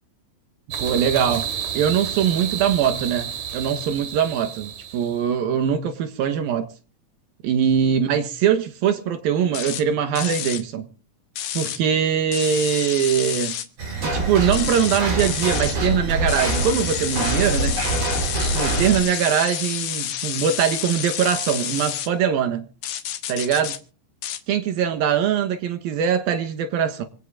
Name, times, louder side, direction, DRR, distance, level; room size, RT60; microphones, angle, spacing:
sound 1, 0.7-5.2, right 9 dB, 65° right, 3.4 m, -30 dB
voice 1, 0.8-1.5 1.7-6.7 7.4-10.9 11.5-13.6 14.0-17.8 18.5-22.7 23.3-23.8 24.5-27.0, right 8 dB, 85° right, 3.2 m, -22 dB
sound 2, 9.5-9.8 10.1-10.6 11.4-11.8 12.3-13.7 14.5-15.8 16.3-22.1 22.8-23.8 24.2-24.4, left 10 dB, 70° left, 1.6 m, -29 dB
sound 3, 13.8-19.0, right 2 dB, 45° right, 5.6 m, -25 dB
26.0 x 8.8 x 3.8 m
omnidirectional pair, 4.1 m